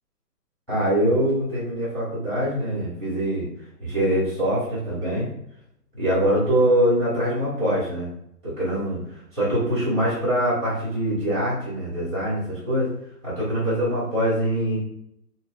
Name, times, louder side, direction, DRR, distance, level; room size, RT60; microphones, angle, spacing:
voice 1, 0.7-3.5 3.8-5.3 6.0-8.1 8.4-9.0 9.3-12.9 13.2-14.8, right 1 dB, 5° left, -10 dB, 0.8 m, -23 dB
2.6 x 2.1 x 2.6 m, 0.76 s
hypercardioid pair, 145°, 47 cm